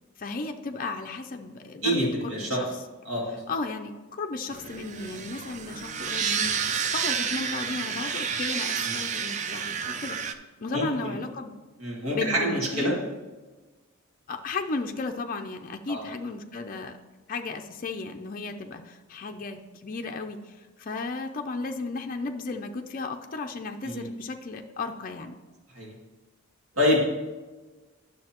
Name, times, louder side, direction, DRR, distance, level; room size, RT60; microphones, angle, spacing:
voice 1, 0.2-2.7 3.5-10.2 10.6-11.6 12.1-13.0 14.3-17.0 17.3-25.3, left 3 dB, 40° left, 4 dB, 0.4 m, -34 dB
voice 2, 1.8-2.6 3.0-3.4 8.8-8.9 10.7-11.1 11.8-12.9 15.9-16.0 23.8-24.1 25.7-25.9 26.8-27.0, equal, 85° right, -5 dB, 2.3 m, -27 dB
sound 1, 4.5-10.3, right 7 dB, 35° right, 0.4 m, -30 dB
10.5 x 6.4 x 2.9 m, 1.2 s
head